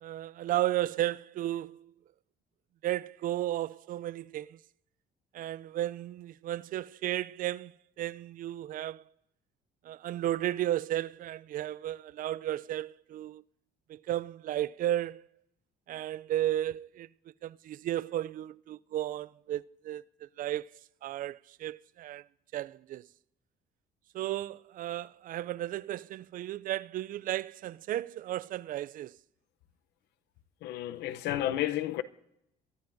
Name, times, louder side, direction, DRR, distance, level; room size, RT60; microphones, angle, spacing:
voice 1, 0.0-1.9 2.8-4.6 5.3-9.0 9.8-13.4 13.9-15.3 15.9-17.1 17.4-20.7 21.0-22.2 22.5-23.1 24.1-29.2, right 13 dB, 55° right, 0.4 m, -34 dB
voice 2, 30.6-32.0, left 13 dB, 85° left, 0.7 m, -31 dB
23.0 x 13.0 x 2.6 m
cardioid pair, 110°, 17 cm